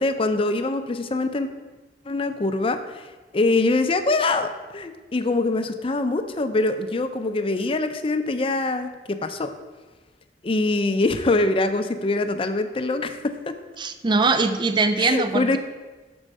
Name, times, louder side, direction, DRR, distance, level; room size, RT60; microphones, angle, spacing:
voice 1, 0.0-1.5 2.1-8.9 9.2-9.5 10.4-13.5 15.0-15.6, left 2 dB, 30° left, 8 dB, 0.5 m, -24 dB
voice 2, 13.8-15.6, right 3 dB, 25° right, 10 dB, 0.4 m, -21 dB
6.2 x 4.4 x 6.5 m, 1.3 s
head